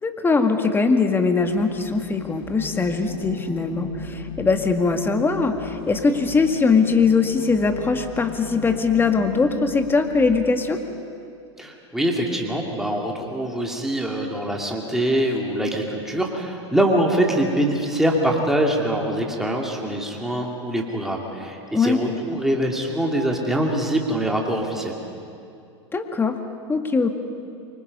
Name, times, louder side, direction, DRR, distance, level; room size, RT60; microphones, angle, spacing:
voice 1, 0.0-10.8 21.7-22.0 25.9-26.4 26.7-27.1, left 4 dB, 15° left, 6 dB, 2.0 m, -21 dB
sound 1, 1.4-10.6, left 4 dB, 40° left, 3.9 m, -37 dB
voice 2, 11.6-24.9, right 1 dB, ahead, 0 dB, 3.0 m, -24 dB
29.0 x 24.5 x 5.6 m, 2.5 s
hypercardioid pair, 110°, 15 cm